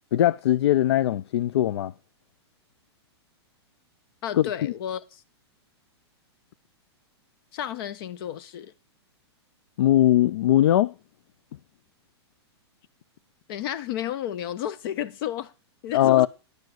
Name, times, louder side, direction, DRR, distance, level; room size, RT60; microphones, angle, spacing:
voice 1, 0.1-1.9 4.4-4.7 9.8-10.9 15.9-16.3, left 13 dB, 70° left, 0.5 m, -20 dB
voice 2, 4.2-5.2 7.5-8.7 13.5-15.5 15.8-16.3, left 10 dB, 55° left, 1.1 m, -32 dB
10.5 x 4.7 x 7.8 m
hypercardioid pair, 125°, 14 cm